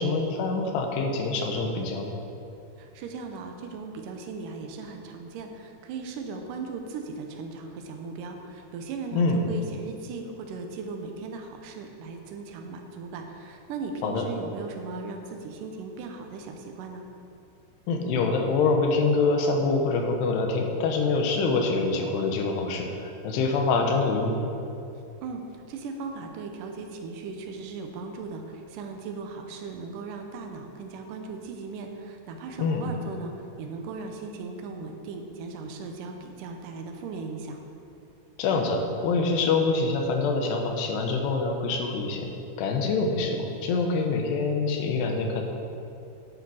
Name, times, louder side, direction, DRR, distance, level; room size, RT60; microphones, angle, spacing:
voice 1, 0.0-2.1 9.1-9.4 14.0-14.2 17.9-24.4 32.6-32.8 38.4-42.3 42.6-45.4, left 3 dB, 80° left, 3 dB, 3.1 m, -25 dB
voice 2, 2.8-17.1 25.2-25.4 25.7-37.6, right 4 dB, 80° right, 4 dB, 1.9 m, -38 dB
10.5 x 8.5 x 4.8 m, 2.7 s
omnidirectional pair, 4.8 m